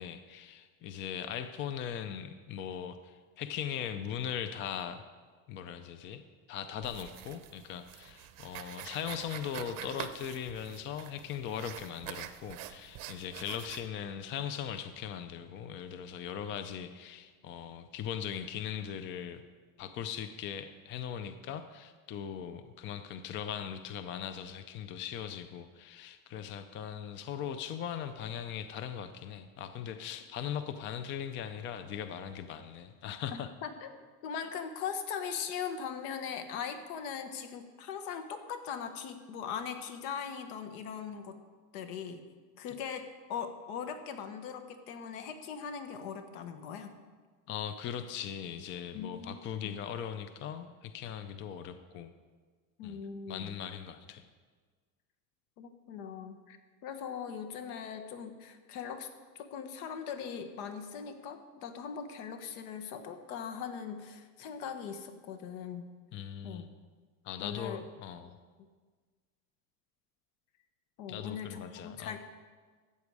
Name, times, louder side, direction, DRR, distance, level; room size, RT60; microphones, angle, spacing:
voice 1, 0.0-5.0 5.5-6.2 6.5-19.4 19.8-33.5 34.4-34.5 47.5-52.1 52.8-53.0 53.3-54.2 66.1-66.7 67.2-68.4 71.1-72.2, left 8 dB, 30° left, 10 dB, 0.4 m, -39 dB
sound 1, 6.8-13.9, right 12 dB, 50° right, 0.7 m, -46 dB
voice 2, 33.3-33.9 34.2-41.4 41.7-42.2 42.6-46.9 48.9-49.8 52.8-53.5 55.6-56.6 56.8-59.1 59.3-65.9 66.4-66.6 67.4-67.8 71.0-72.2, left 7 dB, 75° left, 8 dB, 1.4 m, -40 dB
14.0 x 8.2 x 4.8 m, 1.5 s
cardioid pair, 150°, 44 cm